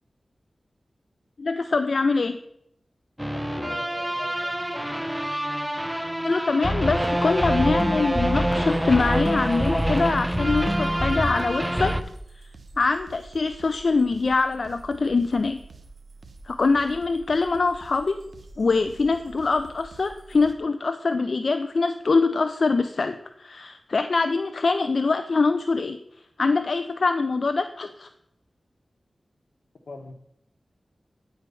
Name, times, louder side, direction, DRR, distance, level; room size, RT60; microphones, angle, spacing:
voice 1, 1.4-2.4 6.2-12.0 12.8-15.6 16.5-18.2 18.6-26.0 26.4-28.1, left 4 dB, 70° left, 9 dB, 0.5 m, -24 dB
sound 1, 3.2-12.0, equal, 5° right, 0.7 m, -25 dB
voice 2, 3.3-5.1 29.9-30.1, left 3 dB, 85° left, 6 dB, 1.1 m, -41 dB
sound 2, 8.7-20.5, right 3 dB, 75° right, 1.0 m, -47 dB
9.5 x 4.6 x 6.8 m, 0.75 s
cardioid pair, 45°, 0 cm